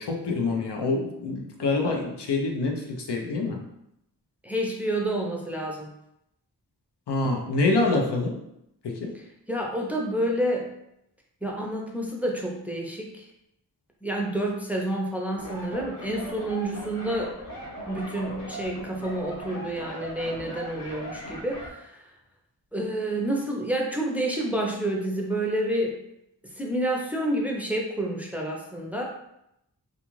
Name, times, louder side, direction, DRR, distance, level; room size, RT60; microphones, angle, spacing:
voice 1, 0.0-3.6 7.1-8.4 8.8-9.1, left 3 dB, 85° left, 1 dB, 0.6 m, -26 dB
voice 2, 4.4-5.9 9.1-10.7 11.4-13.3 14.0-17.3 17.9-22.0 22.7-26.0 26.4-29.0, right 1 dB, 5° right, -1 dB, 0.5 m, -29 dB
sound 1, 15.4-21.7, equal, 50° left, 0.8 m, -39 dB
2.4 x 2.4 x 3.0 m, 0.81 s
wide cardioid pair, 50°, 40 cm